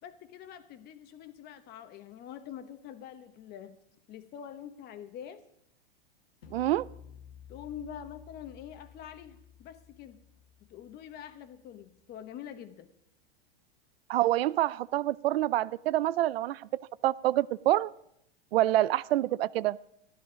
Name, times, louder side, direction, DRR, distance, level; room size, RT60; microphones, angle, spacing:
voice 1, 0.0-3.8 4.1-5.4 7.5-10.2 10.7-12.9, left 9 dB, 35° left, 1.1 m, -45 dB
sound 1, 6.4-11.8, left 8 dB, 90° left, 2.0 m, -53 dB
voice 2, 6.5-6.9 14.1-16.7 17.0-17.9 18.5-19.8, right 14 dB, 85° right, 0.5 m, -26 dB
13.5 x 11.5 x 5.1 m
supercardioid pair, 135°, 30 cm